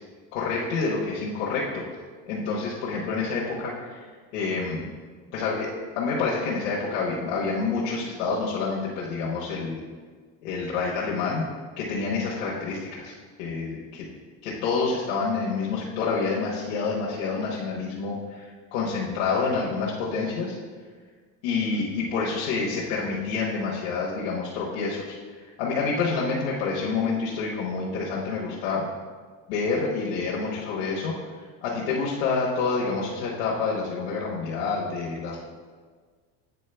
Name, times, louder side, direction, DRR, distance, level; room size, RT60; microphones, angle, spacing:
voice 1, 0.3-1.8 2.3-4.1 4.3-4.9 5.3-9.8 10.4-11.5 11.8-13.7 14.4-20.6 21.4-28.8 29.5-35.4, left 4 dB, 90° left, -5 dB, 1.1 m, -28 dB
8.3 x 4.0 x 3.3 m, 1.5 s
cardioid pair, 175°, 37 cm